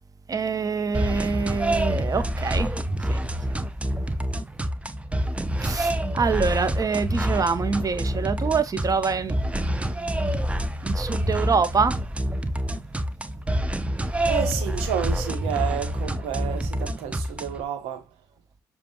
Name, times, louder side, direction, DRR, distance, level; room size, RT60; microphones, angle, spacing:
voice 1, 0.3-2.7 3.1-3.2 5.6-10.4 10.8-12.0, right 5 dB, 35° right, 0.9 m, -26 dB
sound 1, 0.9-17.6, right 1 dB, 10° right, 0.7 m, -27 dB
voice 2, 14.3-18.0, right 9 dB, 75° right, 1.2 m, -30 dB
6.9 x 2.4 x 3.0 m
hypercardioid pair, 50°, 10 cm